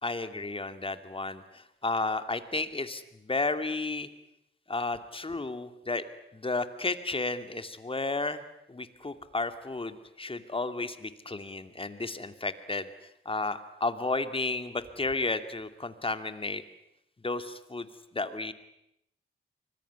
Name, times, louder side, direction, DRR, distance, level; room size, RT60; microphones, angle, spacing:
voice 1, 0.0-1.4 1.8-4.1 4.7-6.0 6.3-8.4 8.7-12.9 13.3-16.6 17.2-17.9 18.1-18.5, left 3 dB, 25° left, 10 dB, 2.5 m, -32 dB
24.5 x 21.0 x 9.6 m, 0.83 s
cardioid pair, 70°, 20 cm